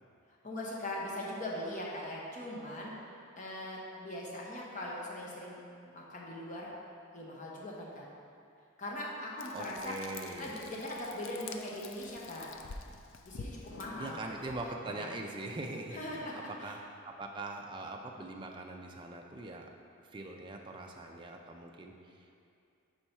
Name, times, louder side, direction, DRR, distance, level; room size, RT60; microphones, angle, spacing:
voice 1, 0.4-2.9 3.4-5.6 5.9-6.7 7.1-8.1 8.8-10.0 10.4-12.5 13.3-14.2 14.8-15.1 15.9-16.3 16.6-16.7, left 1 dB, 35° left, -4 dB, 0.8 m, -40 dB
Frying (food), 9.4-14.8, left 4 dB, 60° left, 0.3 m, -48 dB
voice 2, 9.5-10.7 14.0-16.8 17.0-19.7 20.1-22.3, right 2 dB, 20° right, 2 dB, 0.3 m, -42 dB
4.5 x 4.4 x 5.4 m, 2.6 s
head